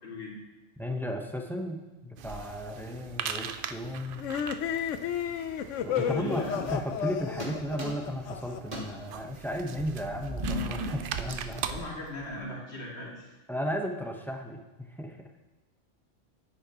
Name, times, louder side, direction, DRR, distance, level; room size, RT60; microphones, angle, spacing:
voice 1, 0.0-0.3 6.1-6.7 11.6-13.3, left 1 dB, 55° left, -4 dB, 2.4 m, -39 dB
voice 2, 0.8-4.2 5.8-11.6 13.5-15.2, equal, ahead, 2 dB, 0.6 m, -35 dB
sound 1, 2.2-11.7, right 8 dB, 65° right, 0.5 m, -41 dB
sound 2, 4.2-8.8, left 9 dB, 75° left, 0.9 m, -32 dB
sound 3, 6.0-7.1 7.4-8.3 8.6-12.4, equal, 35° right, 1.6 m, -38 dB
9.8 x 8.4 x 2.9 m, 1.2 s
omnidirectional pair, 1.3 m